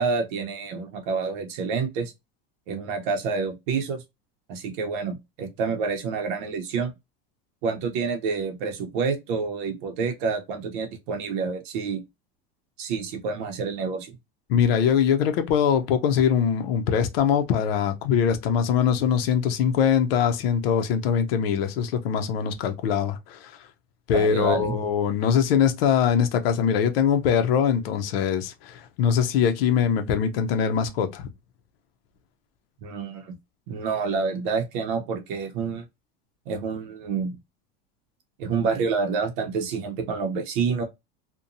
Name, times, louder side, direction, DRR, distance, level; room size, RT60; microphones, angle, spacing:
voice 1, 0.0-2.1 2.7-4.0 4.5-6.9 7.6-12.0 12.8-14.2 24.1-24.7 32.8-33.3 33.7-35.8 36.5-37.4 38.4-40.8, right 5 dB, 60° right, 0.7 m, -28 dB
voice 2, 14.5-23.5 24.1-31.3, left 7 dB, 80° left, 0.6 m, -22 dB
2.8 x 2.2 x 2.5 m
supercardioid pair, 170°, 29 cm